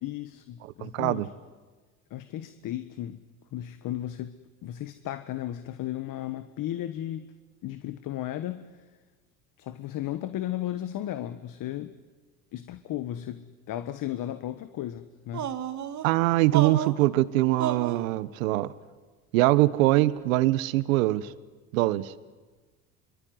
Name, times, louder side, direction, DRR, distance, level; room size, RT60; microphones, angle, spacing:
voice 1, 0.0-1.3 2.1-3.2 3.5-7.3 7.6-8.8 9.6-11.9 12.5-15.6, left 12 dB, 50° left, 11 dB, 1.5 m, -35 dB
voice 2, 0.8-1.3 16.0-18.7 19.3-21.3 21.7-22.1, right 17 dB, 80° right, 16 dB, 1.3 m, -23 dB
sound 1, 15.3-16.1 16.5-17.0 17.6-18.0, right 10 dB, 45° right, 2.1 m, -31 dB
25.0 x 24.5 x 9.6 m, 1.3 s
supercardioid pair, 85°, 40 cm